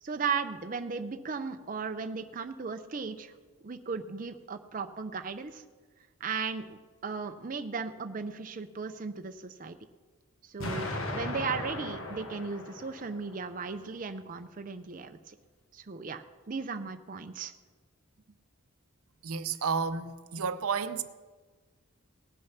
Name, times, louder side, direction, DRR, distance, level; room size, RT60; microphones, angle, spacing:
voice 1, 0.0-3.3 3.6-5.6 6.2-9.8 10.4-15.4 15.7-17.5, right 5 dB, 40° right, 0.5 m, -36 dB
Explosion, 10.6-13.6, left 1 dB, 65° left, 1.4 m, -37 dB
voice 2, 19.2-21.0, right 5 dB, 80° right, 0.6 m, -31 dB
18.5 x 6.4 x 5.8 m
head